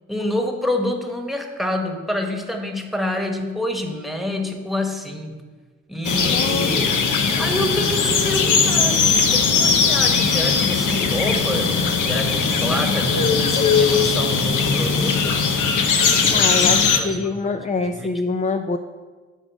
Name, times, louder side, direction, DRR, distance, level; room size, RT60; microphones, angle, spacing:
voice 1, 0.1-5.4 5.9-7.1 7.4-11.7 12.0-15.5 15.9-18.1, left 1 dB, ahead, 3 dB, 1.4 m, -27 dB
sound 1, 6.0-17.0, left 5 dB, 65° left, 1.0 m, -19 dB
voice 2, 6.3-6.7 16.3-18.8, left 4 dB, 25° left, 7 dB, 0.5 m, -25 dB
10.0 x 3.9 x 6.3 m, 1.4 s
supercardioid pair, 45°, 33 cm